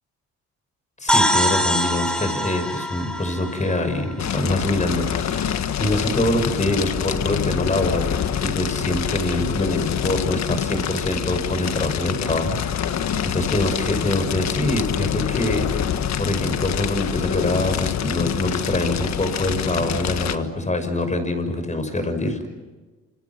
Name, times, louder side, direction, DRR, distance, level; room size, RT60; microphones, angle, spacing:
voice 1, 1.0-5.5 5.8-22.5, left 1 dB, 25° left, 8 dB, 6.5 m, -25 dB
sound 1, 1.1-4.7, equal, 5° left, 4.1 m, -24 dB
Fire, 4.2-20.4, left 9 dB, 65° left, 1.6 m, -26 dB
30.0 x 27.5 x 6.1 m, 1.3 s
cardioid pair, 90°, 30 cm